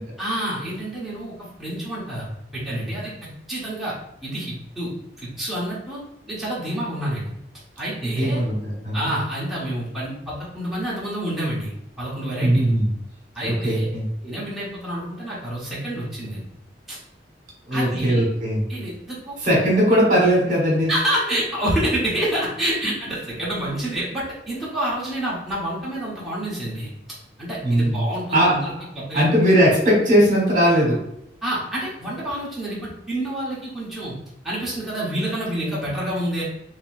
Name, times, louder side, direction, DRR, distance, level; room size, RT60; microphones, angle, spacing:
voice 1, 0.2-1.3 1.6-2.2 2.5-3.9 4.2-4.9 5.2-6.0 6.3-7.3 7.8-8.4 8.9-11.7 12.0-12.7 13.3-13.8 14.2-16.4 16.9-17.0 17.7-18.2 18.7-19.3 20.9-26.9 27.4-29.2 31.4-34.1 34.4-36.4, right 1 dB, ahead, -9 dB, 1.2 m, -28 dB
voice 2, 8.2-9.0 12.4-12.9 13.4-14.1 17.7-18.6 19.4-20.9 27.6-28.0 28.3-28.6 29.1-31.0, equal, 50° right, -3 dB, 1.4 m, -19 dB
4.0 x 3.0 x 2.6 m, 0.79 s
head